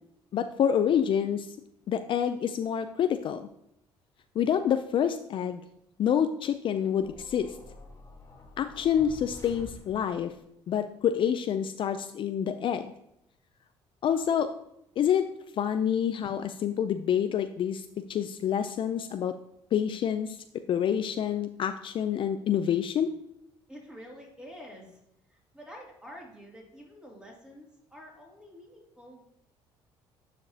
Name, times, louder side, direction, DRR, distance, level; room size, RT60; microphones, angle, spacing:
voice 1, 0.3-1.5 1.9-3.5 4.4-5.6 6.0-7.5 8.6-10.3 10.7-12.9 14.0-14.5 15.0-15.3 15.6-17.8 18.1-19.3 19.7-20.4 20.7-23.1, left 9 dB, 50° left, 9 dB, 0.4 m, -27 dB
sound 1, 7.0-10.3, left 2 dB, 30° left, 1.4 m, -48 dB
voice 2, 23.7-25.0 25.3-29.2, equal, 5° right, -2 dB, 2.5 m, -48 dB
9.3 x 5.1 x 2.8 m, 0.78 s
cardioid pair, 100°, 11 cm